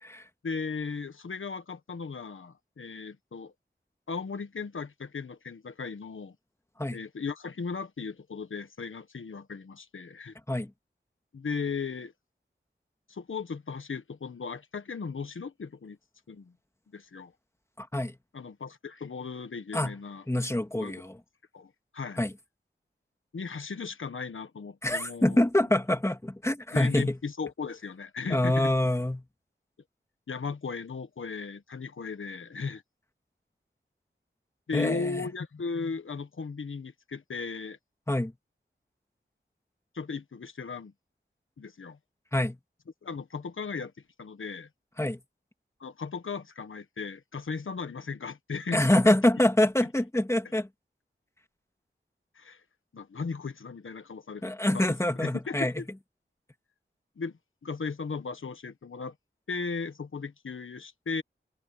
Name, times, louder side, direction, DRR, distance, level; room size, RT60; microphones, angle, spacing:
voice 1, 0.4-3.5 4.1-6.3 6.9-10.4 11.3-12.1 13.1-16.0 16.3-16.5 16.9-17.3 18.3-20.2 20.7-21.0 21.5-22.2 23.3-25.4 26.7-28.7 30.3-32.8 34.7-37.8 39.9-40.9 41.6-42.0 43.0-43.9 44.2-44.7 45.8-49.1 52.3-52.6 52.9-54.4 54.7-55.9 57.2-57.3 57.6-59.1 59.5-61.2, left 5 dB, 80° left, 1.2 m, -36 dB
voice 2, 17.8-18.2 19.7-19.9 20.3-21.1 22.2-22.3 24.8-27.2 28.3-29.2 34.7-35.2 38.1-38.3 42.3-42.6 45.0-45.2 48.7-50.7 54.4-55.7, left 1 dB, 15° left, 2.2 m, -25 dB
wide cardioid pair, 75°, 20 cm